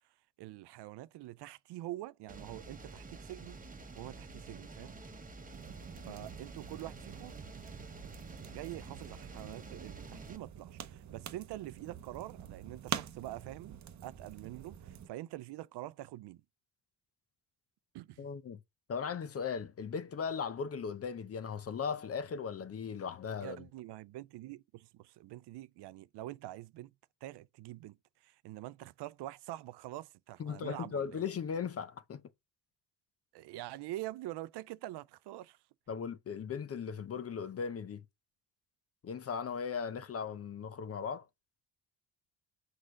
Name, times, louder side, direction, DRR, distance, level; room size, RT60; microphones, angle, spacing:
voice 1, 0.4-3.6 4.0-4.9 6.1-7.4 8.5-13.7 14.0-16.4 17.9-18.3 23.4-26.9 27.2-31.3 33.3-35.6, right 16 dB, 75° right, 0.6 m, -45 dB
sound 1, 2.3-10.4, right 3 dB, 20° right, 1.2 m, -49 dB
sound 2, 5.5-15.1, right 9 dB, 45° right, 0.8 m, -46 dB
voice 2, 18.2-18.6 18.9-23.6 30.4-32.2 35.9-38.0 39.0-41.3, left 6 dB, 35° left, 0.7 m, -38 dB
6.4 x 4.9 x 5.1 m
cardioid pair, 120°, 41 cm